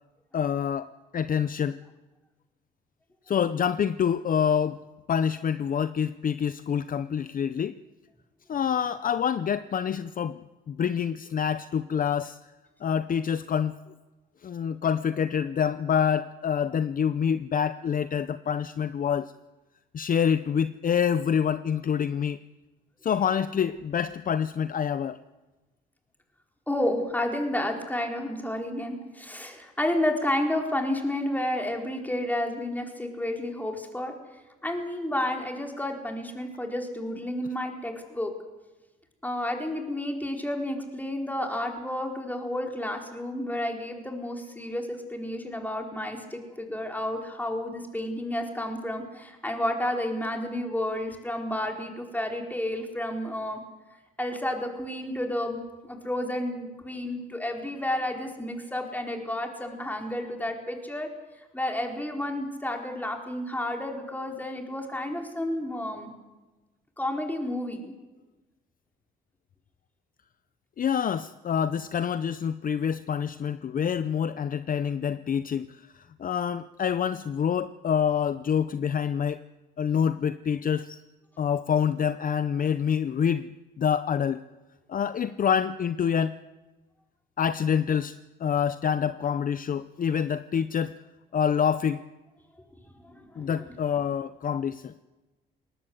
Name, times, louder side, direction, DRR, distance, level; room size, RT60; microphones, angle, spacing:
voice 1, 0.3-1.8 3.3-4.8 5.1-7.8 8.5-12.4 12.8-13.7 14.4-19.3 19.9-22.4 23.0-25.2 70.8-79.4 79.8-81.0 81.4-84.4 84.9-86.4 87.4-91.0 91.3-92.0 93.4-94.9, left 8 dB, 45° left, 13 dB, 0.7 m, -27 dB
voice 2, 26.7-34.1 34.6-38.3 39.2-53.6 54.2-61.1 61.5-66.1 67.0-67.9 93.0-93.6, left 1 dB, 10° left, 2 dB, 4.4 m, -31 dB
20.5 x 19.0 x 8.0 m, 1.2 s
cardioid pair, 90°, 20 cm